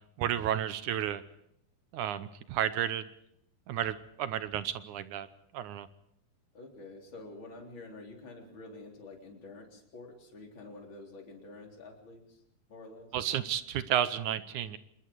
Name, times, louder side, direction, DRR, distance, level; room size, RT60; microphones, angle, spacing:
voice 1, 0.2-1.2 1.9-3.1 3.7-5.3 5.5-5.9 13.1-14.8, right 10 dB, 70° right, 13 dB, 2.1 m, -32 dB
voice 2, 6.5-12.4 12.7-13.1, left 2 dB, 35° left, 1 dB, 4.3 m, -48 dB
26.5 x 21.0 x 4.7 m, 0.74 s
omnidirectional pair, 4.0 m